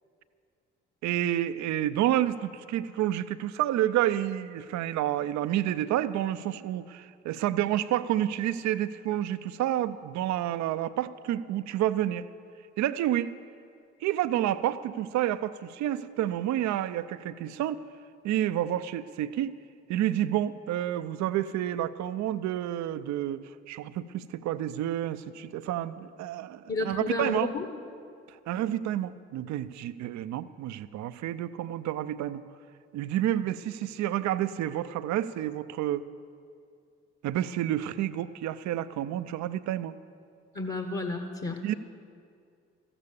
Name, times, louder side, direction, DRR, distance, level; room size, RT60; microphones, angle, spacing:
voice 1, 1.0-12.3 12.8-13.3 14.0-17.8 18.2-19.6 19.9-27.6 28.5-32.4 32.9-36.1 37.2-40.0 41.6-41.7, right 12 dB, 65° right, 14 dB, 0.6 m, -29 dB
voice 2, 26.7-27.6 40.5-41.6, left 3 dB, 35° left, 5 dB, 1.4 m, -31 dB
14.0 x 11.0 x 7.0 m, 2.3 s
hypercardioid pair, 45°, 30 cm